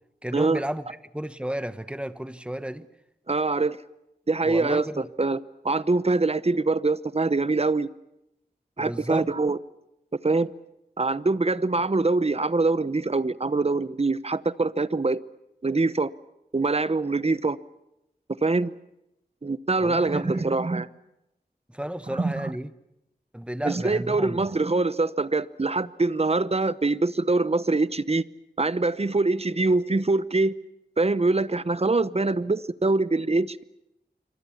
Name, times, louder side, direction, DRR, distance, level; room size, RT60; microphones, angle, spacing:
voice 1, 0.2-0.8 1.1-2.9 4.4-5.1 8.8-9.3 19.8-20.5 21.7-22.7 23.3-24.5, right 1 dB, 5° right, 1.2 m, -32 dB
voice 2, 3.3-3.8 4.3-4.9 5.2-5.4 5.6-7.9 8.8-9.6 10.2-10.5 11.0-15.2 15.6-16.1 16.5-17.6 18.3-18.7 19.4-20.9 22.1-22.5 23.6-28.2 28.6-30.5 31.0-33.6, right 3 dB, 40° right, 0.8 m, -24 dB
27.0 x 24.5 x 7.2 m
wide cardioid pair, 60°, 17 cm